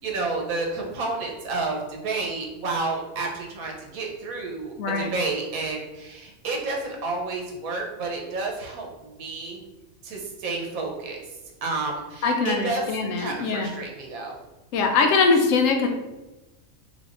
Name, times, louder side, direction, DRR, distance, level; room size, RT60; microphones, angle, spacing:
voice 1, 0.0-9.6 10.0-11.2 11.6-12.9 13.2-14.4, right 3 dB, 85° right, 0 dB, 1.2 m, -30 dB
voice 2, 4.8-5.1 12.2-13.7 14.7-15.9, left 4 dB, 70° left, 3 dB, 0.9 m, -22 dB
3.5 x 3.5 x 2.5 m, 1.0 s
omnidirectional pair, 1.5 m